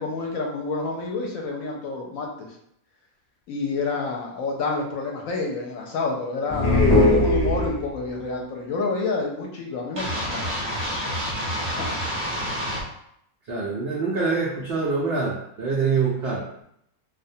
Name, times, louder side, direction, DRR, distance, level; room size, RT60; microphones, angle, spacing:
voice 1, 0.0-2.3 3.5-12.0, left 3 dB, 70° left, 0 dB, 0.9 m, -29 dB
sound 1, 6.5-8.1, left 2 dB, 35° left, 0.8 m, -19 dB
sound 2, 10.0-12.8, equal, 30° right, 0.6 m, -28 dB
voice 2, 13.5-16.5, right 4 dB, 85° right, -4 dB, 0.5 m, -25 dB
2.4 x 2.1 x 2.6 m, 0.73 s
omnidirectional pair, 1.6 m